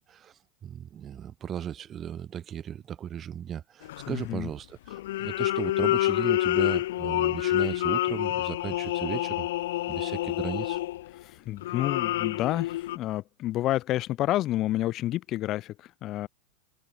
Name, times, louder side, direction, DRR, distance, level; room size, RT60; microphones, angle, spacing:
voice 1, 0.0-9.5 9.9-10.8, right 9 dB, 30° right, 4.8 m, -36 dB
sound 1, 3.8-4.3 4.9-11.2 11.6-13.0, left 15 dB, 70° left, 2.2 m, -28 dB
voice 2, 4.1-4.5 11.2-16.3, left 15 dB, 45° left, 1.0 m, -29 dB
hypercardioid pair, 95°, 0 cm